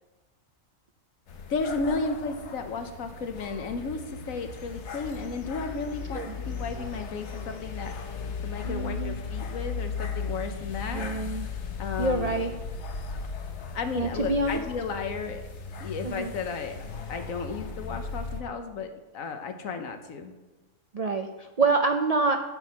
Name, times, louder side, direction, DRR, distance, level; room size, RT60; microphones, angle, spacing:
sound 1, 1.3-18.4, left 5 dB, 60° left, 1.1 m, -37 dB
voice 1, 1.5-11.0 11.8-12.3 13.7-15.4 15.8-16.8 17.1-20.3, left 4 dB, 80° left, 7 dB, 1.4 m, -34 dB
voice 2, 8.6-9.1 10.9-11.5 12.0-12.5 14.0-14.6 16.0-16.3 20.9-22.4, right 3 dB, 60° right, 5 dB, 0.4 m, -26 dB
9.5 x 6.1 x 5.7 m, 1.1 s
omnidirectional pair, 1.4 m